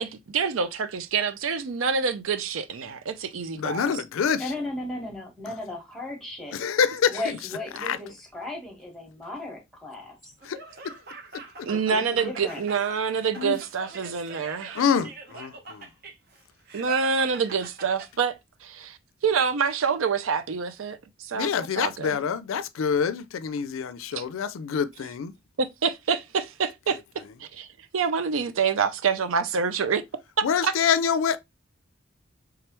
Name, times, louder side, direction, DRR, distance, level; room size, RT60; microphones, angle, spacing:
voice 1, 0.0-3.9 11.6-14.8 16.7-18.3 18.6-19.0 19.2-21.5 21.8-22.2 24.1-24.2 25.6-27.0 27.4-27.7 27.9-30.0 30.6-30.7, right 6 dB, 85° right, 0.5 m, -26 dB
voice 2, 3.6-4.5 5.5-5.6 6.5-7.4 7.7-8.0 10.4-10.6 10.8-10.9 11.6-11.7 13.4-13.6 14.7-15.9 21.3-25.3 30.4-31.4, left 7 dB, 90° left, 0.4 m, -26 dB
voice 3, 4.4-6.5 7.1-10.3 11.7-12.6, left 1 dB, ahead, 1.5 m, -36 dB
Laughter, 10.4-18.1, right 3 dB, 50° right, 0.9 m, -44 dB
3.5 x 3.3 x 3.0 m
head